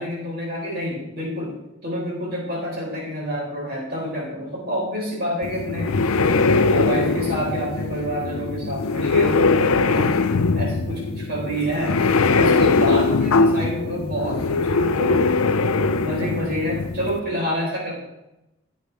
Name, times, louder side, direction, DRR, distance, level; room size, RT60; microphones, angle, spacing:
voice 1, 0.0-1.5 1.8-6.1 6.7-10.2 10.5-12.1 12.4-15.4 16.0-18.0, equal, 45° right, -3 dB, 4.5 m, -28 dB
sound 1, 5.4-17.2, left 3 dB, 80° left, 0.6 m, -21 dB
15.5 x 8.7 x 3.5 m, 0.93 s
head